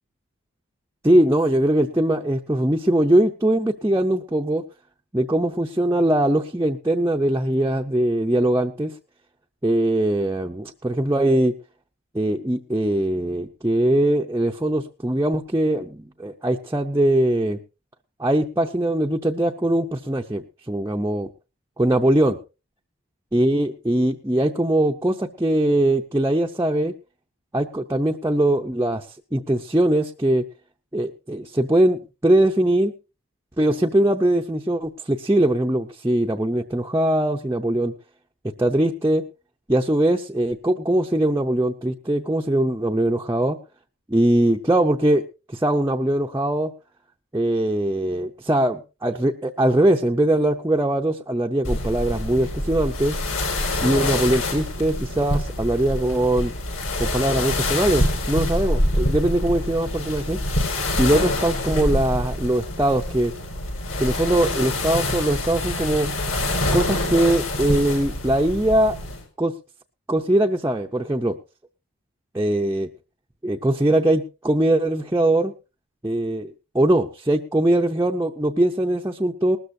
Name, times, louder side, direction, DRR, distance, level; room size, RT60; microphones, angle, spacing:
voice 1, 1.0-4.6 5.1-8.9 9.6-11.5 12.1-17.6 18.2-21.3 21.8-22.4 23.3-26.9 27.5-29.1 29.3-30.4 30.9-32.9 33.6-37.9 38.6-39.2 39.7-43.6 44.1-46.7 47.3-53.2 53.8-56.5 57.0-60.4 61.0-63.3 64.0-66.1 66.7-69.0 69.4-69.5 70.1-71.4 72.3-72.9 73.4-75.5 76.0-79.6, right 1 dB, 15° right, 0 dB, 0.5 m, -21 dB
sound 1, 51.6-69.2, left 1 dB, 70° left, 6.1 m, -26 dB
19.5 x 13.0 x 2.7 m, 0.31 s
head